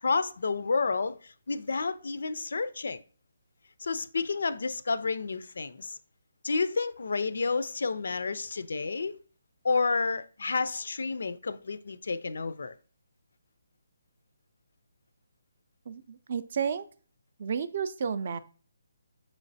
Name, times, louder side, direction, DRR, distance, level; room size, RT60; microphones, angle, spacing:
voice 1, 0.0-3.0 3.8-6.0 6.4-9.2 9.6-12.7, left 4 dB, 70° left, 0.3 m, -30 dB
voice 2, 15.9-16.8 17.4-18.4, right 6 dB, 45° right, 0.3 m, -31 dB
6.1 x 3.1 x 2.6 m
hypercardioid pair, 165°, 0 cm